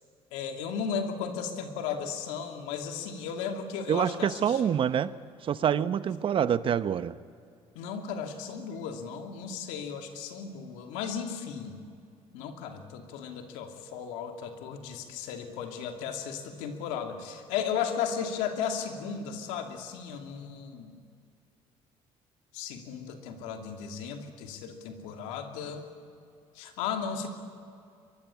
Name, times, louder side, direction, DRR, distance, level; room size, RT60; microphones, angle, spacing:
voice 1, 0.3-4.7 7.7-11.8 12.3-20.9 22.5-25.9 26.5-27.3, left 7 dB, 90° left, 5 dB, 2.6 m, -35 dB
voice 2, 3.9-5.1 5.4-7.1, right 8 dB, 50° right, 15 dB, 0.9 m, -26 dB
23.5 x 22.5 x 8.4 m, 2.4 s
cardioid pair, 95°, 12 cm